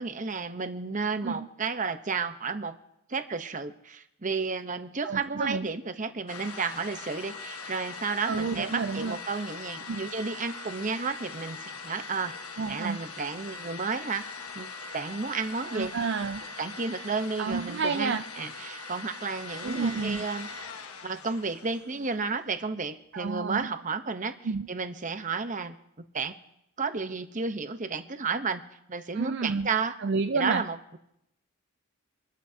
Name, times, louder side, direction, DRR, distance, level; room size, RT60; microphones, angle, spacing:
voice 1, 0.0-2.8 3.1-12.3 12.7-14.2 14.5-15.9 16.6-20.5 21.0-24.4 24.7-25.7 26.1-26.3 26.8-30.0 30.3-30.8, right 4 dB, 35° right, 9 dB, 0.8 m, -32 dB
voice 2, 5.0-5.7 8.3-9.2 9.9-10.0 12.6-13.0 15.7-16.4 17.4-18.2 19.6-20.2 23.1-23.7 24.4-24.7 29.1-29.7 30.0-30.6, right 4 dB, 50° right, 9 dB, 0.4 m, -30 dB
sound 1, 6.3-22.3, left 4 dB, 75° left, 1.4 m, -41 dB
27.0 x 12.5 x 2.8 m, 0.81 s
head